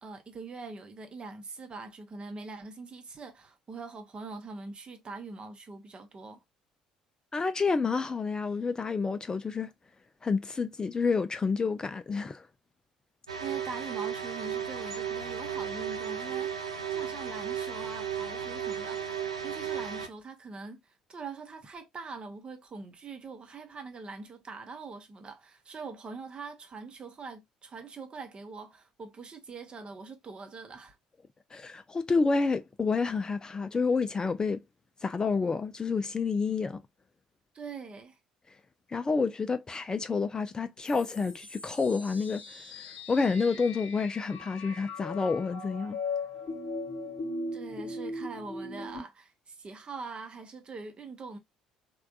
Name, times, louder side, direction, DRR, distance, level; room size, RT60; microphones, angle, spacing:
voice 1, 0.0-6.4 13.4-31.0 37.5-38.2 47.5-51.4, right 4 dB, 30° right, 0.8 m, -43 dB
voice 2, 7.3-9.7 10.2-12.5 31.5-34.6 35.0-36.8 38.9-46.0, left 4 dB, 25° left, 0.4 m, -29 dB
sound 1, 13.3-20.1, right 8 dB, 85° right, 0.5 m, -34 dB
sound 2, 40.9-49.0, left 3 dB, 50° left, 1.2 m, -39 dB
3.4 x 2.3 x 2.3 m
figure-of-eight pair, 55°, 3 cm